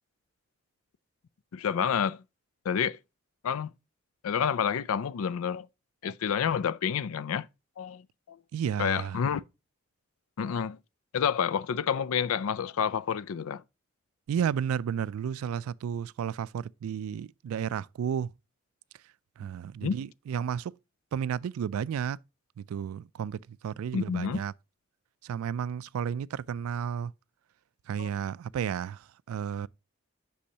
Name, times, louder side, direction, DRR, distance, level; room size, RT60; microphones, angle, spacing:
voice 1, 1.5-2.2 2.7-3.0 3.4-3.7 4.2-5.7 6.0-7.5 7.8-8.0 8.3-8.4 8.8-9.4 10.4-10.8 11.1-13.6 19.8-20.0 23.9-24.4 28.0-28.1, left 7 dB, 85° left, 0.4 m, -29 dB
voice 2, 8.5-9.2 14.3-18.3 19.4-20.8 21.1-22.2 22.6-24.5 25.2-27.1 27.9-29.7, right 8 dB, 85° right, 0.3 m, -32 dB
8.5 x 6.2 x 2.8 m
head